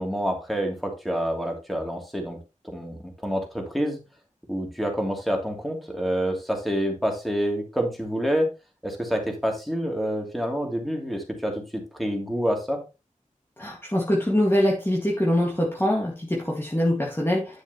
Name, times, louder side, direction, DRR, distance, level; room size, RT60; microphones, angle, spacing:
voice 1, 0.0-2.4 2.7-4.0 4.5-8.5 8.8-12.8, equal, ahead, 1 dB, 3.0 m, -27 dB
voice 2, 13.6-17.6, left 1 dB, 15° left, -2 dB, 1.9 m, -24 dB
9.9 x 7.1 x 3.0 m, 0.28 s
wide cardioid pair, 65°, 13 cm